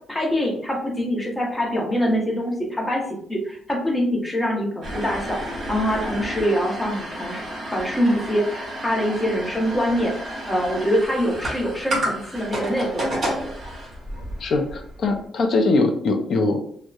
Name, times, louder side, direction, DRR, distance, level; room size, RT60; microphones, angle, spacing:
voice 1, 0.1-10.1 10.5-13.5, equal, 10° left, -2 dB, 0.7 m, -24 dB
sound 1, 4.8-15.2, right 1 dB, 40° right, 1.2 m, -31 dB
voice 2, 14.4-16.6, left 3 dB, 50° left, 5 dB, 0.4 m, -21 dB
2.7 x 2.0 x 2.3 m, 0.62 s
cardioid pair, 135°, 0 cm